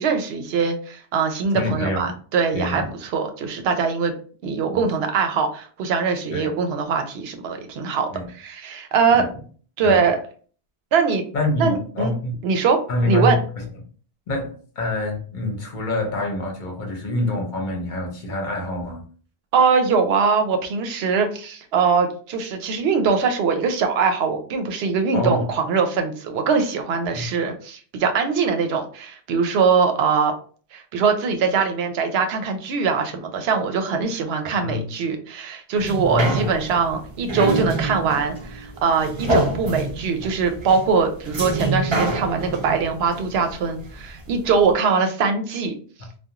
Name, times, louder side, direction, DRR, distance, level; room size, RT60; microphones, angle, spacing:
voice 1, 0.0-4.1 4.4-8.1 8.3-9.3 9.8-10.2 10.9-11.2 11.6-12.1 12.4-12.8 13.1-13.4 19.5-30.3 30.7-45.7, right 5 dB, 80° right, 5 dB, 0.8 m, -22 dB
voice 2, 1.5-2.1 2.5-2.9 4.7-4.9 6.3-6.5 8.1-8.3 9.1-9.3 9.8-10.0 11.3-12.3 12.9-13.6 14.3-19.0 25.1-25.4 27.1-27.3 34.5-34.8 36.0-36.4, left 1 dB, 55° left, 1 dB, 0.9 m, -26 dB
sound 1, 35.7-44.3 44.7-44.8, right 2 dB, 35° right, 0.5 m, -26 dB
2.4 x 2.2 x 2.8 m, 0.43 s
omnidirectional pair, 1.0 m